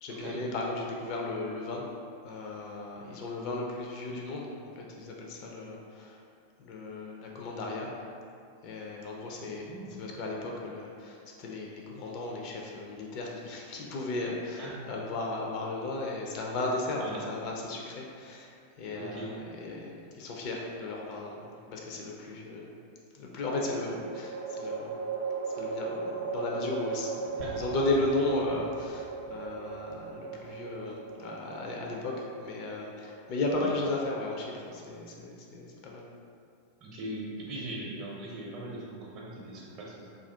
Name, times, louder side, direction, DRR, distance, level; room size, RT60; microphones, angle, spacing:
voice 1, 0.0-1.9 2.2-6.2 6.6-7.9 8.6-18.5 18.8-22.7 23.1-25.0 25.5-36.1, left 2 dB, 40° left, -1 dB, 0.4 m, -35 dB
voice 2, 9.4-10.0 14.6-14.8 17.0-17.2 18.9-19.4 27.4-27.6 33.6-33.7 36.8-40.1, right 1 dB, 40° right, -4 dB, 0.7 m, -40 dB
sound 1, 20.6-21.4 23.6-35.0, right 4 dB, 65° right, 0.3 m, -38 dB
sound 2, 27.4-31.4, left 1 dB, 65° left, 0.8 m, -49 dB
2.4 x 2.3 x 3.3 m, 2.4 s
figure-of-eight pair, 90°, 0 cm